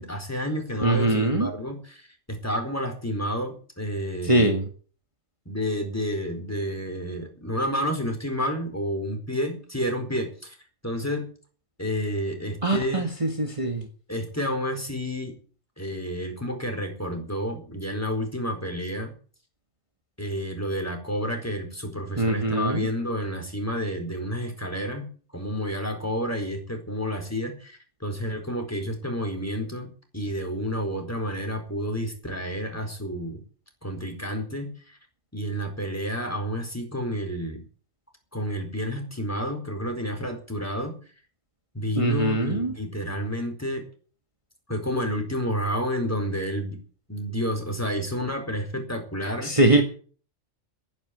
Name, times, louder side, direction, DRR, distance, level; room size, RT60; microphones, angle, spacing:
voice 1, 0.0-4.5 5.5-10.6 10.8-11.3 11.8-13.0 14.1-15.4 15.8-19.1 20.2-33.4 33.8-35.0 35.3-37.6 38.3-40.9 41.7-43.9 44.7-46.8 47.1-49.6, equal, 10° left, 4 dB, 4.4 m, -30 dB
voice 2, 0.8-1.5 4.2-4.6 12.6-13.9 22.2-22.9 42.0-42.7 49.4-49.8, right 2 dB, 25° right, 3 dB, 2.0 m, -22 dB
12.0 x 11.0 x 9.5 m, 0.41 s
omnidirectional pair, 1.3 m